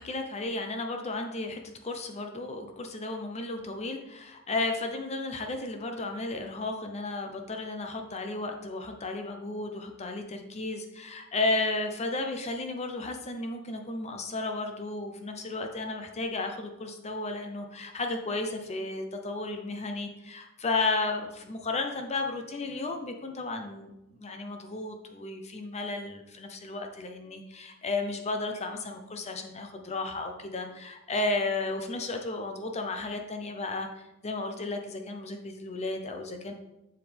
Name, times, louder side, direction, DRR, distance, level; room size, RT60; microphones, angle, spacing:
voice 1, 0.0-36.5, left 2 dB, 30° left, 5 dB, 0.7 m, -33 dB
7.5 x 7.2 x 3.4 m, 0.93 s
head